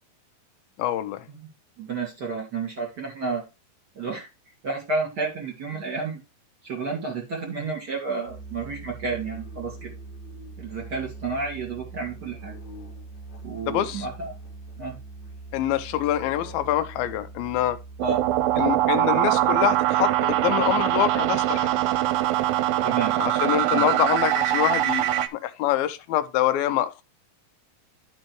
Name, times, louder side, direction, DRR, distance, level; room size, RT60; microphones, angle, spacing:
voice 1, 0.8-1.3 13.7-14.1 15.5-17.8 18.6-21.7 23.2-27.0, left 12 dB, 85° left, 2.5 m, -25 dB
voice 2, 1.8-3.4 4.0-4.3 4.6-6.2 6.6-9.9 10.6-12.5 13.4-14.3 14.8-15.0 18.0-18.2 22.8-23.1 23.7-23.9, right 4 dB, 30° right, 2.4 m, -31 dB
Musical instrument, 8.2-19.0, right 3 dB, 50° left, 1.5 m, -42 dB
sound 1, 18.0-25.3, right 14 dB, 85° right, 2.4 m, -23 dB
11.5 x 5.3 x 3.1 m
omnidirectional pair, 4.2 m